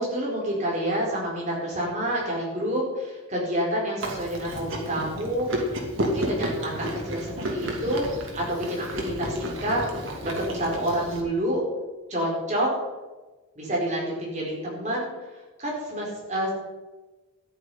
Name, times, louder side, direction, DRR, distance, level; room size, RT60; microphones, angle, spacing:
voice 1, 0.0-9.8 10.2-11.6 12.1-12.7 13.6-15.1 15.6-16.5, equal, 35° right, -3 dB, 4.5 m, -28 dB
Chewing mastication, 4.0-11.2, equal, 65° right, 2.6 m, -32 dB
13.5 x 9.9 x 5.5 m, 1.2 s
head